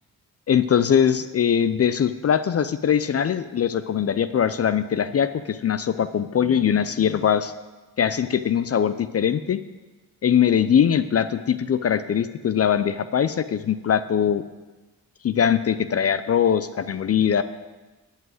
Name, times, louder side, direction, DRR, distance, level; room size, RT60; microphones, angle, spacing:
voice 1, 0.5-7.5 8.0-9.6 10.2-14.4 15.2-17.4, left 8 dB, 40° left, 13 dB, 0.5 m, -21 dB
10.5 x 5.7 x 7.8 m, 1.2 s
cardioid pair, 65°, 36 cm